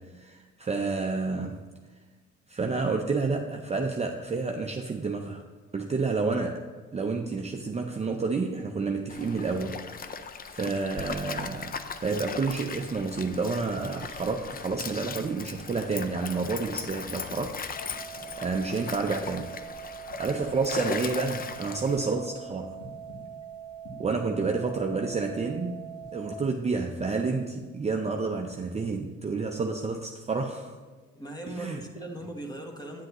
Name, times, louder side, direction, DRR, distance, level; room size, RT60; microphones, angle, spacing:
voice 1, 0.0-1.7 2.5-5.4 5.7-6.6 6.9-9.8 10.5-17.6 18.4-19.5 20.2-22.8 24.0-25.8 26.1-30.8 31.5-31.8, right 4 dB, 20° right, 2 dB, 0.5 m, -30 dB
Stream, 9.1-22.2, left 5 dB, 30° left, 0.5 m, -38 dB
sound 1, 17.8-26.3, right 7 dB, 75° left, 2.7 m, -43 dB
voice 2, 31.1-33.1, right 1 dB, 15° left, 2 dB, 1.2 m, -39 dB
9.1 x 7.6 x 3.0 m, 1.4 s
cardioid pair, 90°, 30 cm